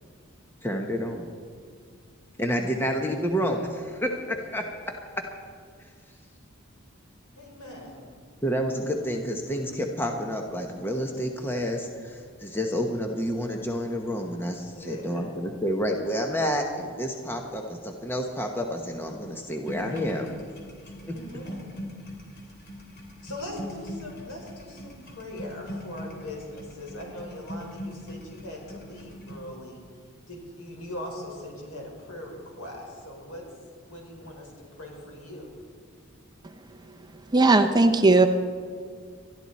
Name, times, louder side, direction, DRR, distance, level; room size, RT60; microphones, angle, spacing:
voice 1, 0.6-1.3 2.4-4.6 8.4-20.4 21.0-21.1, equal, 10° left, 2 dB, 0.9 m, -29 dB
voice 2, 7.4-8.0 14.7-15.3 21.1-21.7 23.2-29.8 30.3-33.4 33.9-35.5, left 1 dB, 75° left, 0 dB, 4.7 m, -40 dB
sound 1, 19.7-29.4, equal, 45° left, 3.1 m, -41 dB
voice 3, 37.3-38.3, right 2 dB, 20° right, 7 dB, 0.6 m, -17 dB
20.5 x 13.5 x 4.2 m, 2.1 s
head